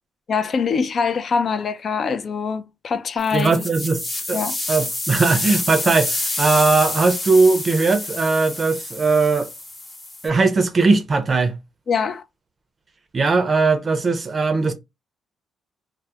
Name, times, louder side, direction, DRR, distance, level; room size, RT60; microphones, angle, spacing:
voice 1, 0.3-3.6 4.3-4.6 11.9-12.2, left 5 dB, 50° left, 0.3 m, -23 dB
sound 1, 3.2-10.3, left 2 dB, 30° left, 0.8 m, -28 dB
voice 2, 3.3-4.0 4.3-4.4 4.7-9.5 10.2-11.5 13.1-14.7, right 4 dB, 35° right, 0.5 m, -19 dB
2.2 x 2.0 x 2.7 m
cardioid pair, 90°, 0 cm